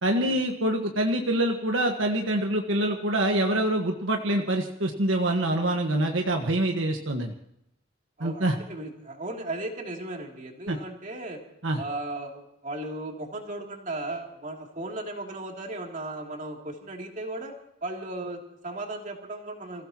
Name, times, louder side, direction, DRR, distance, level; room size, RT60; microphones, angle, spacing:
voice 1, 0.0-7.3 8.2-8.5 10.7-10.8 11.6-11.8, right 1 dB, 75° right, 2 dB, 1.5 m, -25 dB
voice 2, 8.2-11.4 11.8-17.5 17.8-19.9, right 2 dB, 40° right, 1 dB, 3.0 m, -36 dB
28.5 x 16.0 x 3.0 m, 0.79 s
head